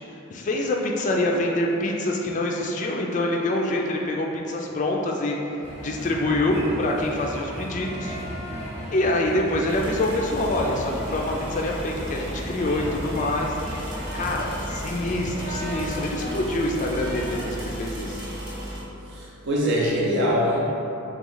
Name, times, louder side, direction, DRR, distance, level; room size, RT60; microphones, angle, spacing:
voice 1, 0.3-5.4 5.8-8.2 8.9-13.5 14.1-18.2 20.7-20.8, left 1 dB, 35° left, 0 dB, 0.3 m, -25 dB
sound 1, 5.6-17.4, equal, 10° right, 0.9 m, -35 dB
sound 2, 9.7-18.8, equal, 80° right, 1.0 m, -35 dB
voice 2, 19.1-20.7, equal, 55° right, -4 dB, 0.6 m, -23 dB
3.5 x 3.0 x 3.8 m, 2.9 s
head